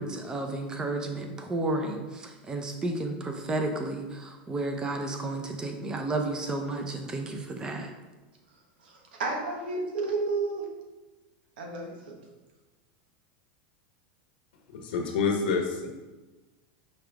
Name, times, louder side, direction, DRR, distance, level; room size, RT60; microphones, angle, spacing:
voice 1, 0.0-7.9, right 2 dB, 15° right, 4 dB, 0.7 m, -32 dB
voice 2, 8.8-10.7 11.6-12.2, right 3 dB, 90° right, 1 dB, 1.4 m, -31 dB
voice 3, 14.7-15.9, left 5 dB, 80° left, 3 dB, 1.1 m, -27 dB
5.6 x 5.0 x 3.5 m, 1.2 s
supercardioid pair, 145°, 5 cm